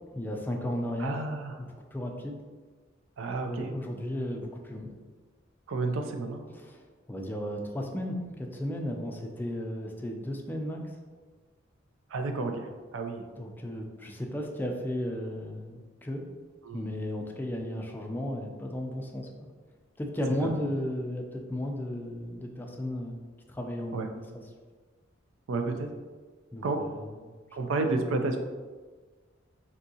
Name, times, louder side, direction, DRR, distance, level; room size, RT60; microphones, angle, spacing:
voice 1, 0.1-1.2 1.6-2.4 3.4-4.9 6.5-6.8 7.1-10.8 13.4-16.2 16.7-19.5 20.0-23.2 23.5-24.2 26.5-26.9, left 1 dB, 10° left, 1 dB, 0.3 m, -34 dB
voice 2, 1.0-1.6 3.2-3.7 5.7-6.4 12.1-13.2 16.6-16.9 20.4-20.5 23.9-24.1 25.5-25.9 26.6-26.8 27.5-28.4, right 3 dB, 90° right, 5 dB, 0.4 m, -31 dB
3.5 x 2.7 x 2.7 m, 1.4 s
head